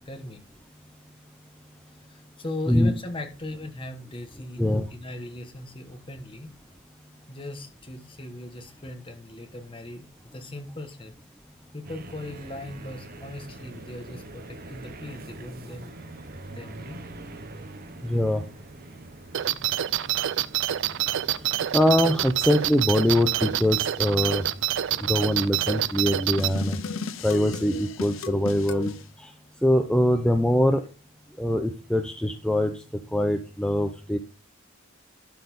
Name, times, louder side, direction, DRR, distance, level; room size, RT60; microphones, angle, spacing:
voice 1, 0.1-0.4 2.1-6.5 7.3-11.1 11.7-16.0 16.5-17.0, left 1 dB, 25° left, 5 dB, 1.3 m, -38 dB
sound 1, 11.8-26.0, right 2 dB, 45° right, 1.0 m, -44 dB
voice 2, 18.0-18.4 21.7-24.4 25.0-26.8 27.2-29.3 29.6-30.8 31.4-32.7 33.1-34.2, left 1 dB, 5° left, 5 dB, 0.6 m, -23 dB
sound 2, 19.3-26.5, right 12 dB, 65° right, 0.4 m, -27 dB
sound 3, 26.4-29.0, left 5 dB, 70° left, 0.7 m, -35 dB
12.0 x 4.2 x 5.3 m, 0.34 s
head